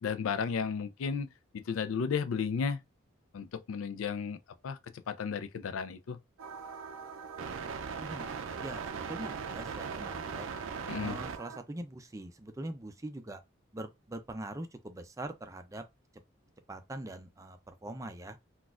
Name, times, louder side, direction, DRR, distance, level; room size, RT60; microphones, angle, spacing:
voice 1, 0.0-1.3 1.5-2.8 3.3-4.4 4.6-4.8 5.1-6.2 10.9-11.2, left 6 dB, 90° left, 0.4 m, -33 dB
sound 1, 6.4-11.6, right 6 dB, 80° right, 0.4 m, -39 dB
voice 2, 8.6-10.5 11.0-13.4 13.7-15.8 16.7-18.4, right 1 dB, 15° right, 0.4 m, -42 dB
4.0 x 2.4 x 2.3 m
head